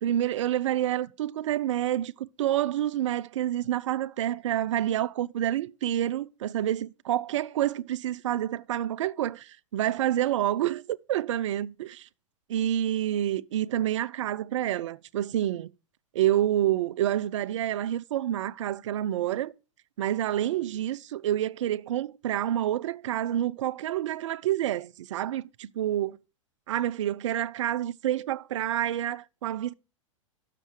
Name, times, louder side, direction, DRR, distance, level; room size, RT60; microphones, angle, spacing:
voice 1, 0.0-12.1 12.5-15.7 16.1-19.5 20.0-26.2 26.7-29.7, right 12 dB, 65° right, 0.4 m, -28 dB
6.5 x 5.4 x 6.4 m
hypercardioid pair, 105°, 17 cm